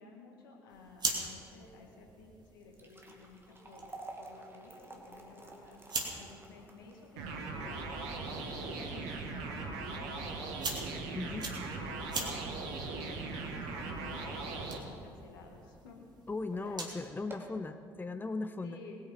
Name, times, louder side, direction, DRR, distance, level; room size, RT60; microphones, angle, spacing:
voice 1, 0.0-3.9 4.2-5.8 6.2-7.9 8.3-10.7 11.2-12.5 13.0-16.1 16.5-17.1 18.6-19.0, left 3 dB, 75° left, 1 dB, 1.9 m, -53 dB
sound 1, 0.7-17.1, right 3 dB, 35° right, 2.7 m, -44 dB
sound 2, 2.5-14.8 15.2-15.3 16.1-16.2 16.6-16.7 17.1-17.7, right 2 dB, 20° right, 2.5 m, -53 dB
sound 3, 7.2-14.8, right 3 dB, 65° right, 1.5 m, -39 dB
voice 2, 11.1-11.5 16.3-18.8, left 3 dB, 15° left, 9 dB, 0.7 m, -38 dB
21.0 x 8.6 x 5.4 m, 2.5 s
figure-of-eight pair, 45°, 12 cm